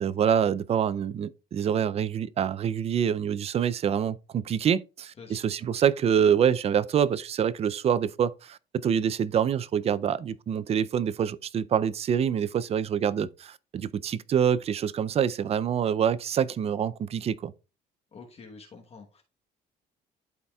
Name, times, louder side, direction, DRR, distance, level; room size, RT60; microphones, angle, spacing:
voice 1, 0.0-17.5, right 8 dB, 35° right, 0.4 m, -26 dB
voice 2, 18.1-19.2, left 4 dB, 35° left, 1.1 m, -47 dB
12.0 x 4.1 x 2.3 m
cardioid pair, 110°, 17 cm